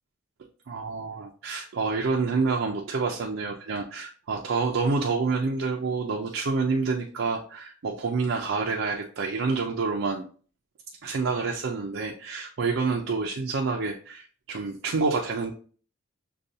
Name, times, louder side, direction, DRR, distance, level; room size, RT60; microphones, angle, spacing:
voice 1, 0.7-10.3 11.0-15.5, right 4 dB, 75° right, -1 dB, 0.5 m, -28 dB
6.4 x 2.3 x 2.7 m, 0.42 s
head